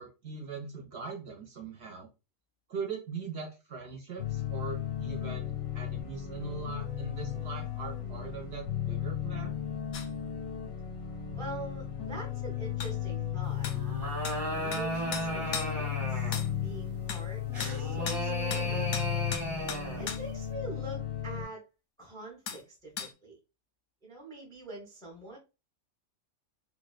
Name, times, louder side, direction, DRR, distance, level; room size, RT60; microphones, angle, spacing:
voice 1, 0.0-2.1 2.7-9.6, right 5 dB, 60° right, -1 dB, 0.8 m, -41 dB
sound 1, 4.2-21.5, left 10 dB, 90° left, 1.1 m, -35 dB
sound 2, 9.9-10.1 12.8-12.9 13.6-13.8 14.2-14.4 14.7-14.9 15.1-15.7 16.3-16.5 17.1-17.2 17.6-17.8 18.1-18.2 18.5-18.7 18.9-20.2 22.5-22.6 23.0-23.1, left 7 dB, 65° left, 0.8 m, -37 dB
voice 2, 11.3-13.7 14.6-16.3 16.6-18.8 19.9-21.7 22.0-23.4 24.0-25.4, right 2 dB, 5° left, -2 dB, 0.4 m, -44 dB
sound 3, 13.7-16.5 17.5-20.1, right 1 dB, 25° right, 0.9 m, -35 dB
2.6 x 2.2 x 2.3 m, 0.29 s
omnidirectional pair, 1.5 m